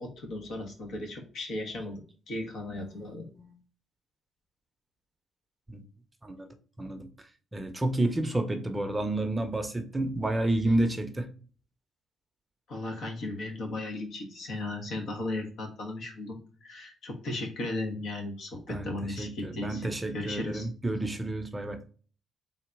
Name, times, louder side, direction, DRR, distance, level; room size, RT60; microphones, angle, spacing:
voice 1, 0.0-2.0 2.3-3.3 12.7-20.7, left 2 dB, 70° left, 1.4 m, -36 dB
voice 2, 6.8-11.3 18.7-21.8, right 1 dB, 15° right, 0.7 m, -30 dB
3.9 x 2.8 x 4.6 m
cardioid pair, 90°, 0 cm